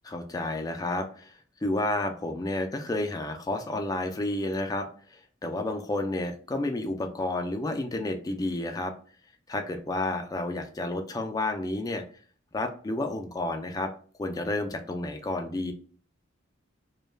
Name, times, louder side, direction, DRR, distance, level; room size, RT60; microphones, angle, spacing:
voice 1, 0.1-1.3 1.6-8.9 9.5-12.0 12.5-13.9 14.2-15.7, left 2 dB, 20° left, 5 dB, 0.3 m, -31 dB
2.2 x 2.1 x 3.2 m, 0.43 s
head